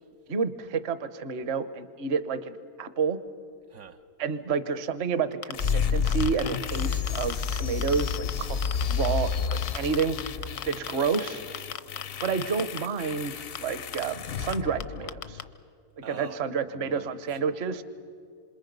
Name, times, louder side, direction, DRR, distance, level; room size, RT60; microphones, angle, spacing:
voice 1, 0.3-3.2 4.2-8.6 8.9-10.3 10.6-11.4 12.2-15.4 16.1-17.8, right 5 dB, 50° right, 1.1 m, -29 dB
voice 2, 3.7-4.0 16.0-17.8, right 6 dB, 70° right, 1.2 m, -46 dB
sound 1, 5.3-5.7 6.1-8.3 8.6-9.1 9.5-11.3 11.5-12.8 13.6-13.7 13.9-14.0 14.5-14.6 14.8-14.9 15.1-15.4, left 9 dB, 80° left, 1.3 m, -34 dB
sound 2, 5.5-15.5, left 6 dB, 55° left, 0.7 m, -31 dB
27.0 x 27.0 x 5.3 m
omnidirectional pair, 1.6 m